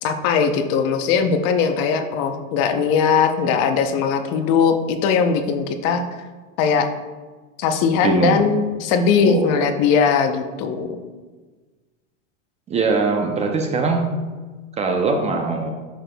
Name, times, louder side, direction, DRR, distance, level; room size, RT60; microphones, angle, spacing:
voice 1, 0.0-6.0 6.6-6.9 7.6-10.9, left 6 dB, 40° left, 7 dB, 0.7 m, -19 dB
voice 2, 8.0-8.5 9.2-9.6 12.7-14.1 14.8-15.7, right 4 dB, 15° right, 3 dB, 0.5 m, -21 dB
10.0 x 6.4 x 2.3 m, 1.3 s
hypercardioid pair, 120°, 39 cm